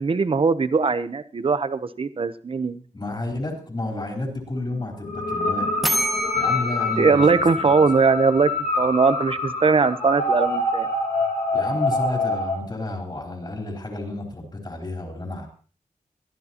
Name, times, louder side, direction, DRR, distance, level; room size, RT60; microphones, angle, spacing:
voice 1, 0.0-2.8 7.0-8.5 8.8-10.9, right 4 dB, 40° right, 13 dB, 0.8 m, -20 dB
voice 2, 2.9-5.9 6.3-7.3 7.6-7.7 11.5-15.5, left 2 dB, 30° left, 1 dB, 3.9 m, -31 dB
sound 1, 5.0-12.6, left 2 dB, 70° left, 3.2 m, -26 dB
sound 2, 5.8-8.6, right 1 dB, ahead, 0.8 m, -29 dB
21.5 x 13.0 x 2.9 m, 0.39 s
wide cardioid pair, 145°, 14 cm